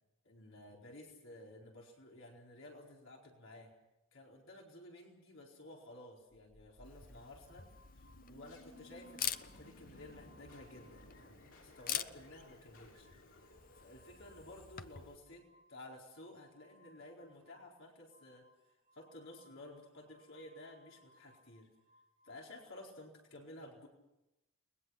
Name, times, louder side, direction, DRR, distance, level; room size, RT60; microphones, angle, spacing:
voice 1, 0.2-3.7 4.1-7.7 8.3-13.1 13.8-18.5 18.9-21.7 22.2-23.9, left 1 dB, 65° left, -1 dB, 4.6 m, -54 dB
sound 1, 6.5-15.4, left 1 dB, 80° left, 6.8 m, -59 dB
Camera, 6.8-15.2, left 10 dB, 40° left, 0.7 m, -46 dB
sound 2, 7.4-11.4 11.7-22.6, left 1 dB, 30° right, 4.2 m, -69 dB
30.0 x 21.0 x 5.9 m, 0.94 s
head